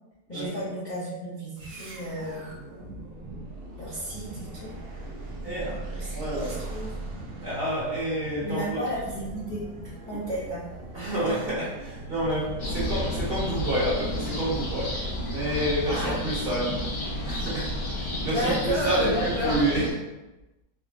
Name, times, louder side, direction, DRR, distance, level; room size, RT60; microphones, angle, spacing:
voice 1, 0.3-2.5 3.8-4.7 5.9-6.9 8.4-9.6 10.1-10.6 15.4-16.3 18.3-19.6, equal, 50° left, -9 dB, 0.5 m, -32 dB
sound 1, 1.6-14.2, right 2 dB, 65° right, 0.6 m, -40 dB
voice 2, 5.4-5.8 6.1-6.5 7.4-8.8 10.1-10.2 10.9-14.9 15.3-16.7 17.2-19.9, right 1 dB, 45° right, -8 dB, 1.0 m, -29 dB
sound 2, 12.6-19.9, left 1 dB, 65° left, 1.2 m, -31 dB
3.7 x 2.0 x 2.5 m, 1.0 s
omnidirectional pair, 1.7 m